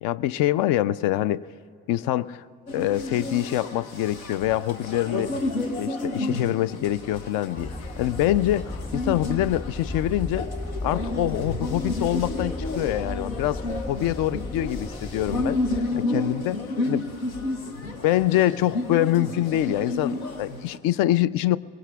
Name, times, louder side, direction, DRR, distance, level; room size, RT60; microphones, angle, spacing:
voice 1, 0.0-1.5 1.9-2.4 2.7-5.3 5.8-10.5 10.8-15.6 16.0-16.6 16.9-17.1 18.0-21.6, left 14 dB, 55° left, 20 dB, 0.5 m, -25 dB
sound 1, 2.7-20.8, left 2 dB, 90° left, 0.8 m, -31 dB
sound 2, 7.5-15.8, left 1 dB, 15° left, 4.8 m, -35 dB
23.5 x 21.5 x 2.3 m, 2.6 s
figure-of-eight pair, 45°, 41 cm